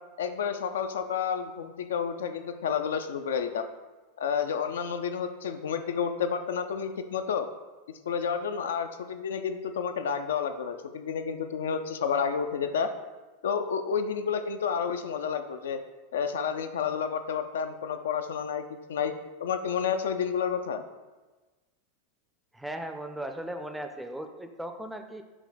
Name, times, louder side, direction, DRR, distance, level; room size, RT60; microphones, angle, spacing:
voice 1, 0.2-3.7 4.2-7.5 8.1-12.9 13.4-15.8 16.1-19.1 19.4-20.8, left 7 dB, 85° left, 8 dB, 0.3 m, -30 dB
voice 2, 22.5-25.2, right 1 dB, 5° right, 6 dB, 0.4 m, -37 dB
5.9 x 2.2 x 4.1 m, 1.2 s
supercardioid pair, 120°, 0 cm